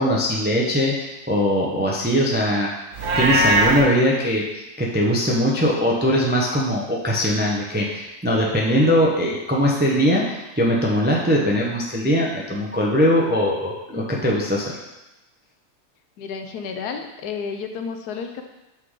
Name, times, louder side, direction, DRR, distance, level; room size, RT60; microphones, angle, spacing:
voice 1, 0.0-2.7 3.2-4.4 4.8-14.8, equal, 15° right, -3 dB, 0.3 m, -21 dB
Livestock farm animals working animals, 2.9-3.8, right 1 dB, 60° right, 1.2 m, -19 dB
voice 2, 16.2-18.4, left 6 dB, 80° left, 6 dB, 1.2 m, -31 dB
5.8 x 3.8 x 4.8 m, 0.99 s
omnidirectional pair, 1.7 m